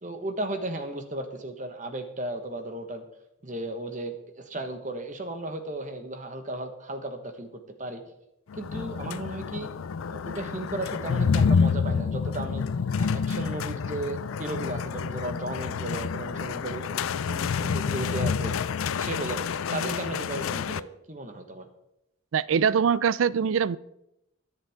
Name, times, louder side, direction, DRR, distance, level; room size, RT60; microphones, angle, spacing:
voice 1, 0.0-3.0 3.4-7.5 7.8-8.0 8.6-9.7 10.1-12.7 13.0-18.5 19.0-19.4 19.7-21.7, right 2 dB, 40° right, 1.3 m, -35 dB
sound 1, 8.5-20.8, left 6 dB, 90° left, 0.4 m, -28 dB
voice 2, 22.3-23.8, right 7 dB, 80° right, 0.4 m, -23 dB
22.5 x 7.6 x 3.6 m
head